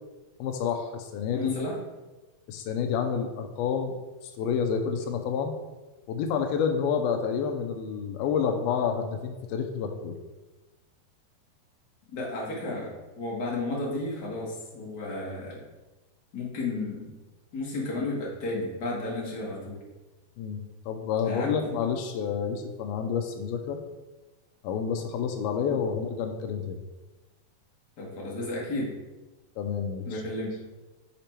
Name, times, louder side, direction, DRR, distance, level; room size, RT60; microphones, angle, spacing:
voice 1, 0.4-1.5 2.5-3.9 4.4-5.5 6.1-10.2 20.4-23.8 24.6-26.8 29.6-30.2, left 6 dB, 80° left, 5 dB, 2.4 m, -29 dB
voice 2, 1.3-1.8 12.1-15.6 16.3-17.1 17.5-19.8 21.3-21.6 25.7-25.8 28.0-28.9 30.0-30.5, left 2 dB, 50° left, -4 dB, 1.2 m, -33 dB
6.8 x 4.9 x 4.5 m, 1.1 s
omnidirectional pair, 4.4 m